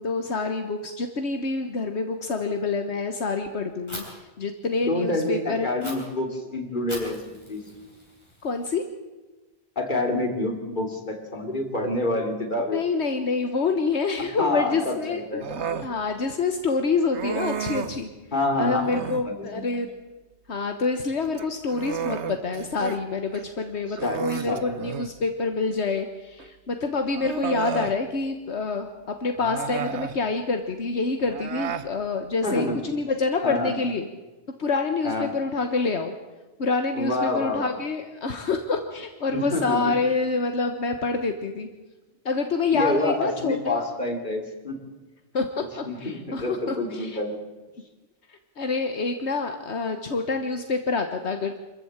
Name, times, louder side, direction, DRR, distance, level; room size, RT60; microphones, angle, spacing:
voice 1, 0.0-5.7 8.4-8.8 12.7-15.4 15.8-18.1 18.6-19.9 20.5-34.1 34.6-36.1 36.6-41.7 42.2-43.8 45.3-47.2 48.3-51.6, left 4 dB, 80° left, 6 dB, 1.6 m, -27 dB
Fire, 3.9-4.0 5.8-5.9 6.9-8.8, left 1 dB, 25° left, 6.4 m, -41 dB
voice 2, 4.8-7.2 7.5-7.6 9.7-12.8 14.4-15.8 18.3-19.7 24.0-24.6 32.4-32.8 33.4-33.8 35.0-35.3 36.9-37.6 39.3-39.9 42.7-44.8 45.8-47.4, left 2 dB, 45° left, 3 dB, 3.3 m, -27 dB
Human voice, 15.4-15.9 17.1-18.0 18.8-19.3 21.2-23.0 23.3-23.5 24.0-25.2 26.4-26.5 27.2-28.0 29.4-30.2 31.2-31.9, right 7 dB, 85° right, 1.3 m, -32 dB
25.5 x 14.5 x 8.8 m, 1.2 s
omnidirectional pair, 1.1 m